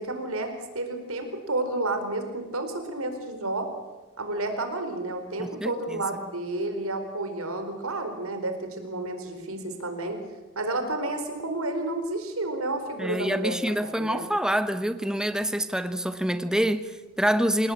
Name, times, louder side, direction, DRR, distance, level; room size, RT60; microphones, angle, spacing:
voice 1, 0.0-3.7 4.2-10.2 10.6-13.6 13.8-14.3, right 2 dB, 75° right, 7 dB, 4.5 m, -31 dB
voice 2, 5.4-6.0 13.0-17.7, equal, 5° right, 10 dB, 1.1 m, -26 dB
28.0 x 19.5 x 8.7 m, 1.2 s
head